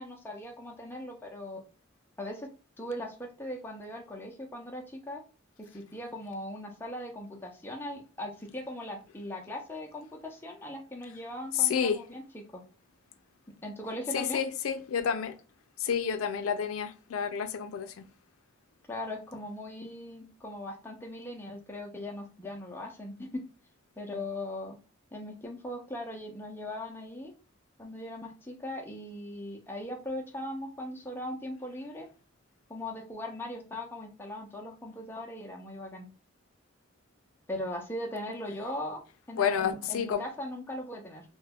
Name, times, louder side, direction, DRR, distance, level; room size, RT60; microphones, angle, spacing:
voice 1, 0.0-1.6 2.2-2.5 2.8-5.2 5.6-12.2 12.5-12.6 13.6-14.4 18.9-23.4 24.0-24.8 25.1-27.3 27.8-32.1 32.7-36.1 37.5-39.0 39.3-41.2, left 1 dB, 10° left, 0.4 m, -39 dB
voice 2, 11.5-12.0 14.1-15.3 15.8-18.1 39.4-40.3, left 7 dB, 85° left, 0.4 m, -29 dB
2.3 x 2.1 x 3.4 m
head